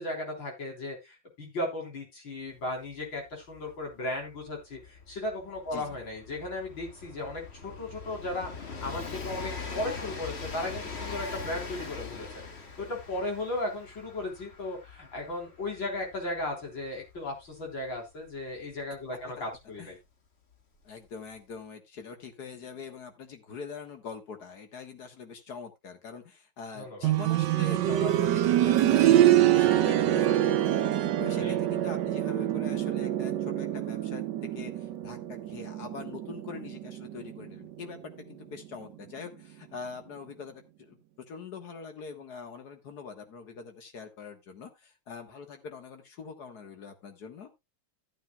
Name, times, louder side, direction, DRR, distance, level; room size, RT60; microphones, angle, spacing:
voice 1, 0.0-12.3 12.5-20.0 26.8-27.1 31.4-31.6, left 2 dB, 75° left, 0 dB, 4.5 m, -36 dB
Train, 2.6-2.7 2.9-19.5 20.5-20.6, left 4 dB, 35° left, 1.4 m, -42 dB
voice 2, 20.8-41.0 41.3-47.6, left 5 dB, 55° left, 6 dB, 2.0 m, -43 dB
sound 1, 27.0-37.8 39.2-39.3, right 12 dB, 70° right, 1.3 m, -25 dB
14.0 x 8.9 x 2.3 m, 0.22 s
omnidirectional pair, 2.1 m